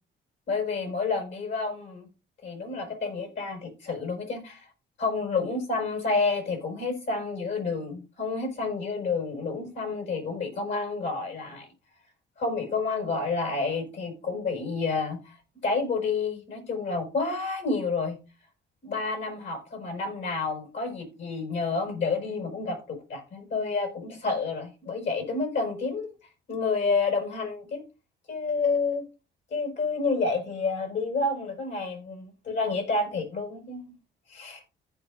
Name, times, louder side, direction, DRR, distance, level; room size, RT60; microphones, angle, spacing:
voice 1, 0.5-2.1 2.4-4.7 5.0-11.7 12.4-15.4 15.6-18.2 18.8-26.1 26.5-27.8 28.3-29.0 29.5-33.8 34.3-34.6, left 4 dB, 70° left, 4 dB, 5.1 m, -29 dB
14.5 x 5.4 x 2.5 m, 0.32 s
cardioid pair, 90°, 20 cm